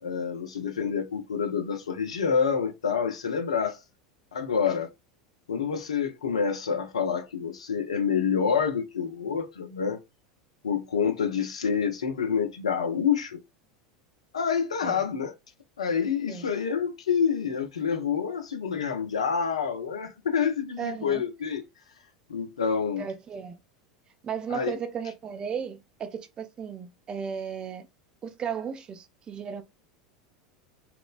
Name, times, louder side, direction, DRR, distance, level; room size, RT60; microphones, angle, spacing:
voice 1, 0.0-3.8 4.3-4.9 5.5-10.0 10.6-13.4 14.3-15.3 15.8-21.6 22.3-23.1 24.5-24.8, left 6 dB, 70° left, 0.5 m, -27 dB
voice 2, 20.8-21.2 23.0-23.6 24.2-27.9 28.2-29.6, right 7 dB, 25° right, 0.5 m, -35 dB
3.0 x 2.0 x 2.3 m
figure-of-eight pair, 80°, 3 cm